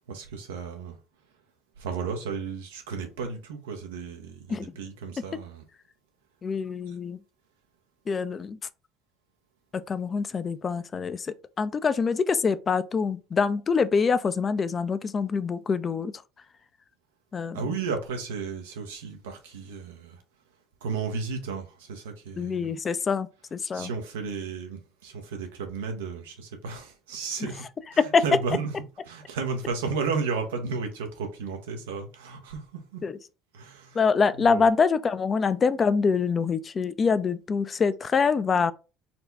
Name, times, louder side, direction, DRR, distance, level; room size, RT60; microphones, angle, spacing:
voice 1, 0.1-1.0 1.8-5.6 17.5-20.2 20.8-22.7 23.7-27.6 27.9-33.0 33.5-34.0 34.3-34.6, right 5 dB, 90° right, 0.9 m, -33 dB
voice 2, 6.4-7.2 8.1-8.6 9.9-16.1 17.3-17.6 22.4-23.9 28.0-28.2 33.0-33.2 34.0-38.7, left 5 dB, 35° left, 0.4 m, -25 dB
4.2 x 2.2 x 4.0 m
hypercardioid pair, 70°, 0 cm